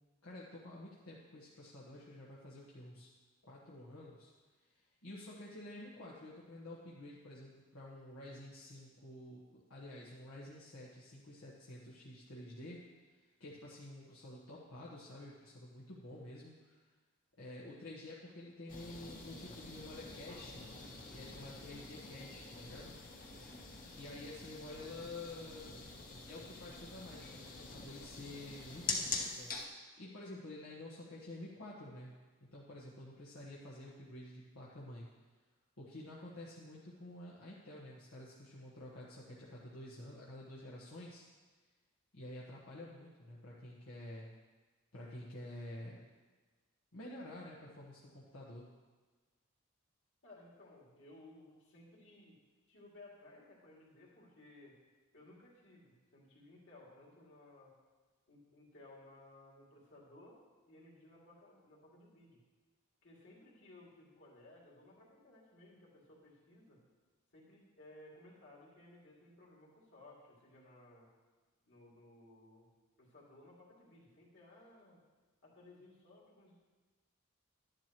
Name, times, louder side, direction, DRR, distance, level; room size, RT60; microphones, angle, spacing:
voice 1, 0.2-3.1 3.4-4.3 4.6-12.8 13.1-16.8 17.4-20.7 21.1-22.9 23.4-23.7 24.0-25.8 26.2-32.1 32.5-35.1 35.8-41.2 42.1-44.3 44.9-46.0 46.9-48.7, left 1 dB, 75° left, -6 dB, 1.4 m, -50 dB
sound 1, 18.7-29.7, left 3 dB, 40° left, 1.1 m, -45 dB
voice 2, 50.2-52.4 52.7-54.8 55.1-57.7 58.3-60.4 60.7-62.4 63.0-66.8 67.3-71.1 71.6-72.7 73.0-75.0 75.4-76.5, left 2 dB, 55° left, -4 dB, 2.6 m, -59 dB
12.0 x 10.5 x 3.1 m, 1.3 s
head